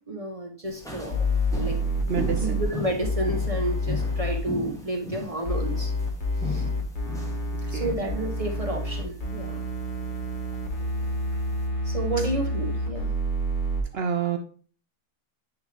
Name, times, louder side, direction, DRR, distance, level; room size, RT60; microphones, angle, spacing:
voice 1, 0.1-2.1 2.4-5.9 6.4-6.7 7.7-9.6 11.8-13.1, right 1 dB, 30° right, 2 dB, 0.9 m, -31 dB
sound 1, 0.6-11.7, left 2 dB, ahead, 1.2 m, -39 dB
sound 2, 1.1-2.6 3.0-4.4 5.4-13.8, left 1 dB, 35° left, 1.3 m, -28 dB
voice 2, 2.1-2.6 7.7-8.0 13.9-14.4, right 7 dB, 70° right, 7 dB, 0.6 m, -28 dB
10.0 x 3.6 x 3.3 m, 0.42 s
omnidirectional pair, 1.6 m